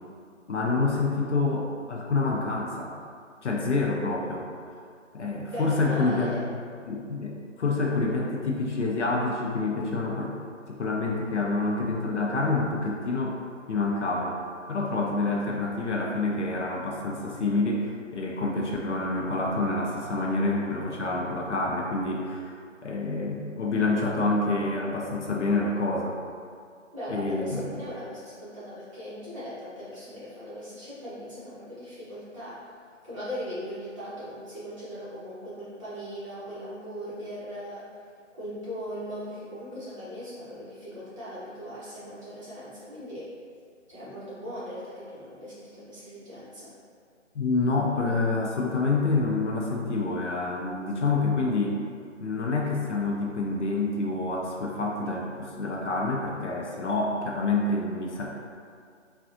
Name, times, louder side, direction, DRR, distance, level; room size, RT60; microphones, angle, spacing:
voice 1, 0.5-2.9 3.4-4.4 5.1-6.3 6.8-10.3 10.7-13.4 13.7-14.4 14.7-26.2 27.1-27.7 47.3-51.8 52.2-58.3, left 3 dB, 65° left, -1 dB, 0.6 m, -27 dB
voice 2, 5.5-6.4 26.9-32.7 33.0-37.9 38.4-43.3 43.9-46.7, equal, 25° right, -12 dB, 1.0 m, -39 dB
3.5 x 2.3 x 2.5 m, 2.2 s
figure-of-eight pair, 155°, 38 cm